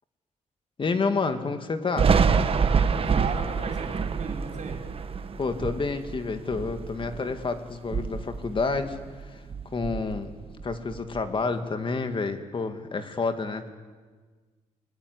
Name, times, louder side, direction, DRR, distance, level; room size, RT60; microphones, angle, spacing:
voice 1, 0.8-2.2 5.4-9.4 9.7-10.4 10.6-13.7, left 4 dB, 40° left, 8 dB, 2.3 m, -29 dB
Thunder, 2.0-7.4 7.8-9.2 9.5-11.2, right 5 dB, 45° right, 1.4 m, -27 dB
voice 2, 2.8-4.8, right 5 dB, 65° right, 2 dB, 5.5 m, -37 dB
30.0 x 19.0 x 9.9 m, 1.5 s
cardioid pair, 110°, 13 cm